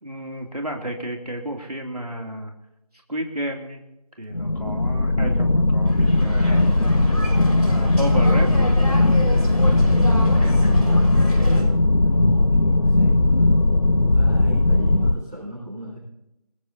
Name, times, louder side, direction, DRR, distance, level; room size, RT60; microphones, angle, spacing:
voice 1, 0.0-2.5 3.1-3.8 4.2-6.7 7.7-9.1 10.4-10.7, right 1 dB, 75° right, 1 dB, 3.0 m, -32 dB
sound 1, 4.3-15.1, left 2 dB, 55° left, 0.7 m, -18 dB
sound 2, 5.9-11.6, equal, 75° left, 5.5 m, -27 dB
voice 2, 9.8-11.0 11.4-13.5 13.8-15.9, right 1 dB, 5° left, -13 dB, 2.3 m, -35 dB
27.5 x 15.0 x 2.9 m, 0.91 s
figure-of-eight pair, 175°, 20 cm